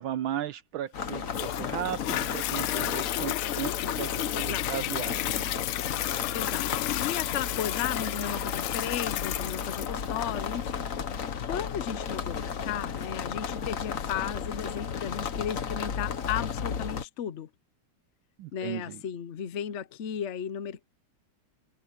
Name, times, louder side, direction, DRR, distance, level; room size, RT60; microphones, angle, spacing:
voice 1, 0.0-5.5 18.4-19.0, right 11 dB, 75° right, 1.5 m, -36 dB
sound 1, 0.9-17.0, left 6 dB, 45° left, 1.3 m, -34 dB
Toilet flush, 1.3-14.4 15.0-15.1, left 15 dB, 90° left, 1.5 m, -33 dB
voice 2, 4.3-4.7 6.3-6.7 7.0-10.9 11.5-17.5 18.5-20.8, left 9 dB, 75° left, 0.6 m, -35 dB
omnidirectional pair, 2.3 m